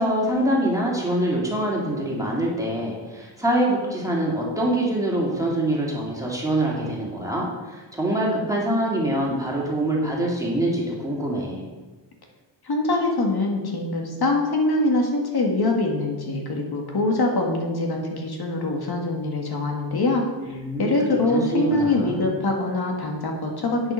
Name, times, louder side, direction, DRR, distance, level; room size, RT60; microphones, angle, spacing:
voice 1, 0.0-11.7 20.4-22.3, right 1 dB, 5° right, -4 dB, 2.5 m, -25 dB
voice 2, 12.6-23.9, left 2 dB, 55° left, 1 dB, 1.8 m, -24 dB
8.9 x 7.7 x 6.4 m, 1.3 s
wide cardioid pair, 170°, 45 cm